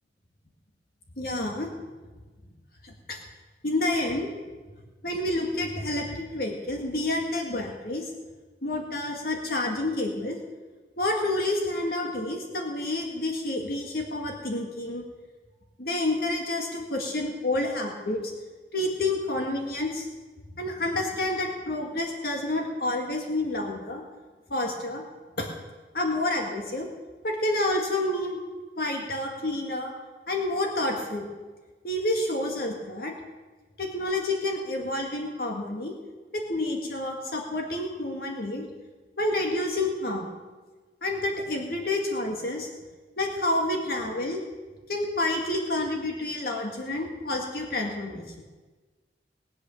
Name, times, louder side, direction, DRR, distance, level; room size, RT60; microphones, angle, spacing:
voice 1, 1.2-1.7 2.8-3.2 3.6-4.4 5.0-8.1 8.6-10.4 11.0-15.0 15.8-18.2 18.7-20.1 20.6-24.0 24.5-25.0 25.4-25.5 25.9-26.9 27.2-28.4 28.8-29.9 30.3-31.3 31.8-33.1 33.8-35.9 36.3-38.7 39.2-40.3 41.0-42.7 43.2-44.4 44.9-48.2, left 1 dB, 55° left, 1 dB, 2.0 m, -29 dB
20.5 x 8.3 x 7.1 m, 1.3 s
head